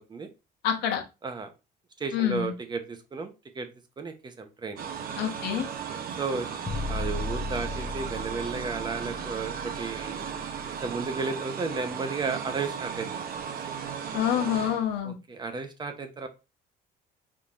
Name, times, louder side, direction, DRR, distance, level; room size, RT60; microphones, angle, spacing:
voice 1, 0.6-1.0 2.1-2.5 5.2-5.7 14.1-15.1, left 10 dB, 85° left, 1.0 m, -27 dB
voice 2, 2.0-3.7 4.0-4.8 6.2-6.5 6.8-10.2 10.8-13.4 15.0-16.3, right 4 dB, 25° right, 0.8 m, -33 dB
sound 1, 4.8-15.0, right 7 dB, 60° right, 0.8 m, -36 dB
sound 2, 6.7-10.8, left 2 dB, 15° left, 0.8 m, -36 dB
4.3 x 3.7 x 2.5 m
cardioid pair, 110°, 17 cm